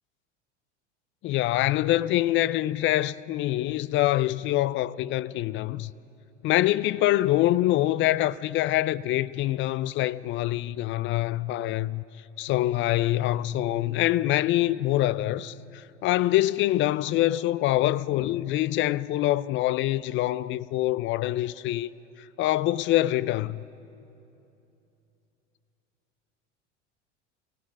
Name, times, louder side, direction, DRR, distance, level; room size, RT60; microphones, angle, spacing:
voice 1, 1.2-5.9 6.4-12.0 12.4-21.9 22.4-23.6, left 15 dB, 35° left, 0.4 m, -25 dB
25.5 x 17.5 x 6.1 m
hypercardioid pair, 80°, 36 cm